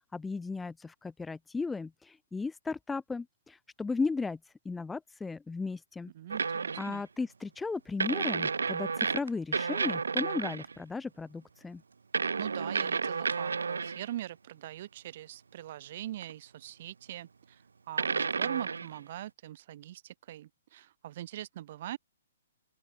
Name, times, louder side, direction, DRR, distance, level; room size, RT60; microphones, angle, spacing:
voice 1, 0.1-4.4 4.7-6.1 6.8-11.8, left 4 dB, 10° left, 1.8 m, -35 dB
voice 2, 6.1-7.0 12.4-17.6 17.9-22.0, right 13 dB, 50° right, 5.5 m, -42 dB
sound 1, 6.3-7.0 8.0-10.7 12.1-14.1 16.2-16.3 18.0-19.0, right 5 dB, 85° right, 2.9 m, -31 dB
open air
hypercardioid pair, 135°, 0 cm